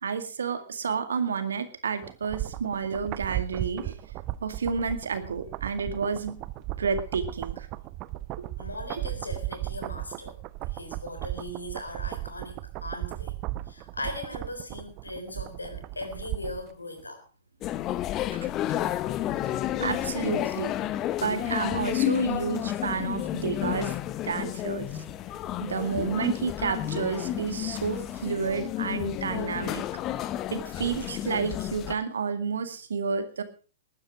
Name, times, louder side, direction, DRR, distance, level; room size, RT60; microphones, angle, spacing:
voice 1, 0.0-4.0 4.4-6.4 6.8-7.7 18.3-18.5 19.8-20.7 21.2-23.9 24.2-24.9 25.6-29.8 30.5-33.4, right 5 dB, 70° right, 9 dB, 2.1 m, -30 dB
sound 1, 2.0-16.7 17.0-17.1, right 16 dB, 35° right, 0.7 m, -36 dB
voice 2, 8.6-10.4 10.7-13.3 13.7-17.2 25.4-25.5, left 1 dB, 85° left, 7 dB, 3.9 m, -39 dB
sound 2, 17.6-31.9, left 12 dB, 30° left, 0.9 m, -31 dB
19.5 x 9.7 x 4.9 m, 0.37 s
figure-of-eight pair, 105°, 0 cm